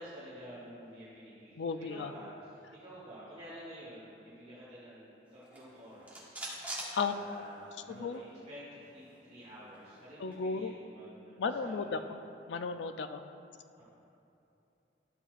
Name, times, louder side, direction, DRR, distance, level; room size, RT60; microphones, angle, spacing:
voice 1, 0.0-6.4 7.0-12.2 13.7-13.8, equal, 35° right, -9 dB, 1.5 m, -50 dB
voice 2, 1.6-2.1 6.9-7.2 7.9-8.2 10.2-10.7 11.4-12.0 12.5-13.2, left 5 dB, 85° left, 9 dB, 0.4 m, -34 dB
sound 1, 5.4-7.8 8.1-8.2 8.5-10.4, right 1 dB, 10° right, 1.3 m, -45 dB
12.5 x 6.8 x 2.5 m, 2.8 s
head